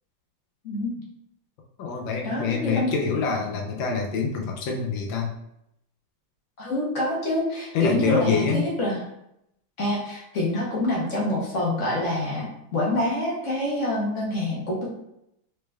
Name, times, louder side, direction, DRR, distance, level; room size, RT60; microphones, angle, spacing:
voice 1, 0.6-1.0 2.2-2.9 6.6-9.0 9.8-12.5 12.7-14.9, left 1 dB, 50° left, -4 dB, 1.0 m, -26 dB
voice 2, 1.8-5.3 7.7-8.7, left 5 dB, 90° left, 1 dB, 1.5 m, -26 dB
3.9 x 3.3 x 2.2 m, 0.79 s
omnidirectional pair, 2.0 m